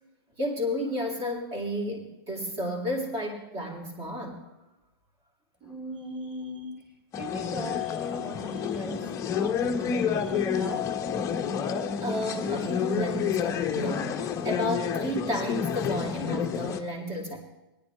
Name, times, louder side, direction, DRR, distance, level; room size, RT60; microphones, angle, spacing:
voice 1, 0.4-4.5 12.0-17.4, equal, 25° right, 1 dB, 2.7 m, -32 dB
voice 2, 5.6-6.8 7.1-11.0, equal, 5° right, 2 dB, 2.8 m, -39 dB
sound 1, 7.1-16.8, left 7 dB, 25° left, 0.9 m, -29 dB
18.0 x 10.5 x 3.5 m, 1.0 s
hypercardioid pair, 125°, 13 cm